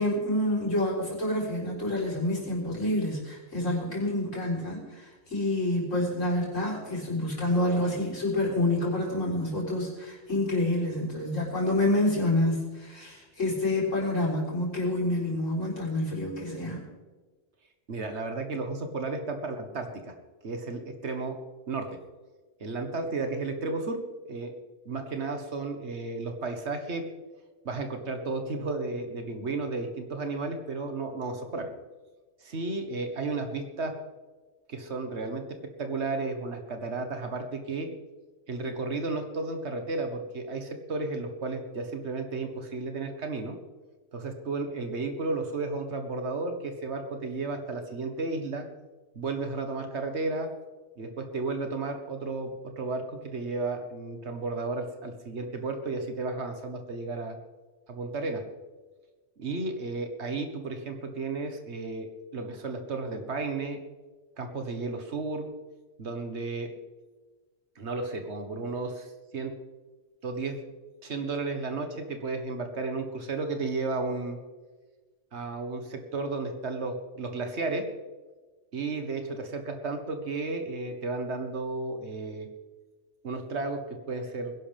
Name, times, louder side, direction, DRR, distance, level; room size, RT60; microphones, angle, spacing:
voice 1, 0.0-16.8, left 1 dB, 85° left, -3 dB, 4.5 m, -28 dB
voice 2, 17.9-20.2 20.4-21.4 21.7-21.9 22.6-24.0 24.3-24.5 24.9-27.1 27.7-31.7 32.4-33.9 34.7-37.9 38.5-43.6 44.1-48.7 49.2-50.5 51.0-57.4 57.9-58.4 59.4-63.8 64.4-65.5 66.0-66.7 67.8-69.1 69.3-69.5 70.2-70.6 71.0-74.4 75.3-77.8 78.7-82.5 83.2-84.5, right 3 dB, 65° right, 6 dB, 1.7 m, -33 dB
20.5 x 11.0 x 3.5 m, 1.3 s
omnidirectional pair, 1.3 m